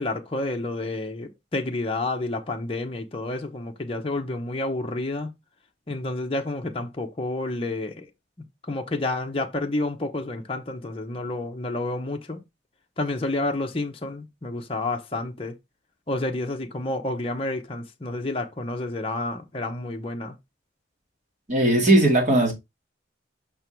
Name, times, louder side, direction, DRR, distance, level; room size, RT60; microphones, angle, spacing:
voice 1, 0.0-5.3 5.9-8.1 8.7-12.4 13.0-15.5 16.1-20.4, left 2 dB, 30° left, 0.8 m, -29 dB
voice 2, 21.5-22.5, right 1 dB, 40° right, 2.0 m, -18 dB
6.0 x 3.6 x 4.4 m
head